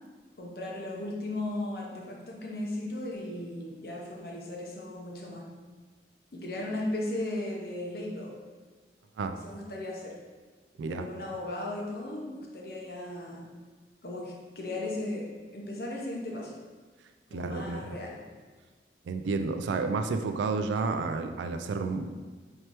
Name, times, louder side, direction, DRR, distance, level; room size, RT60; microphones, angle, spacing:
voice 1, 0.4-5.4 6.3-8.4 9.4-10.1 10.8-13.5 14.0-15.3 15.5-16.5 17.3-18.2, left 1 dB, 55° left, -2 dB, 0.7 m, -36 dB
voice 2, 10.8-11.1 17.3-18.0 19.1-22.1, right 4 dB, 85° right, 7 dB, 0.3 m, -31 dB
4.3 x 3.3 x 2.9 m, 1.4 s
head